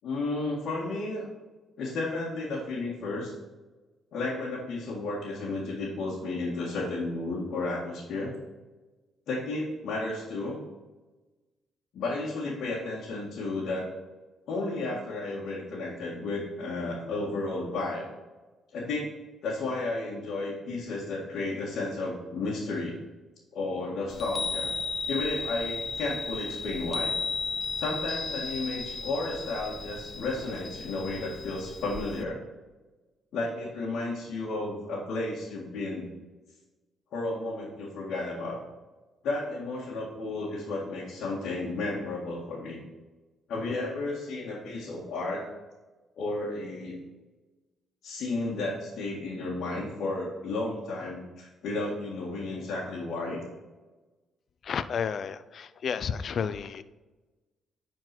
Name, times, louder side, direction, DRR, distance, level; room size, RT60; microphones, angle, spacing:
voice 1, 0.0-1.3 1.8-3.3 4.1-8.3 9.3-10.6 11.9-13.9 14.5-18.1 18.7-19.1 19.4-23.0 23.5-24.7 25.1-27.1 27.8-32.4 33.3-36.1 37.1-38.6 39.2-42.8 43.5-45.5 46.2-47.0 48.0-53.4, left 2 dB, 75° left, -6 dB, 1.9 m, -33 dB
Chime, 24.1-32.2, left 4 dB, 35° left, 0.8 m, -35 dB
voice 2, 54.7-56.8, left 7 dB, 55° left, 14 dB, 0.4 m, -31 dB
10.0 x 4.5 x 4.4 m, 1.2 s
cardioid pair, 90°, 0 cm